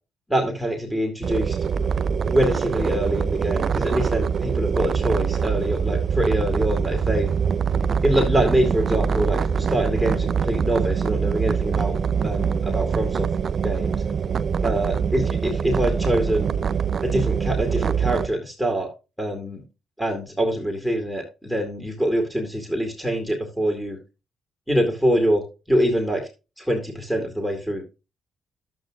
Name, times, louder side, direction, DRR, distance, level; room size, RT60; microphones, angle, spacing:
voice 1, 0.3-1.6 2.2-7.3 8.0-12.0 12.2-13.3 13.6-14.0 14.6-16.5 17.0-18.9 19.2-19.6 20.0-24.0 24.7-26.3 26.6-27.8, right 1 dB, ahead, 1 dB, 2.2 m, -24 dB
sound 1, 1.2-18.3, right 6 dB, 50° right, 0.5 m, -24 dB
11.5 x 8.1 x 2.4 m, 0.29 s
cardioid pair, 90°, 0 cm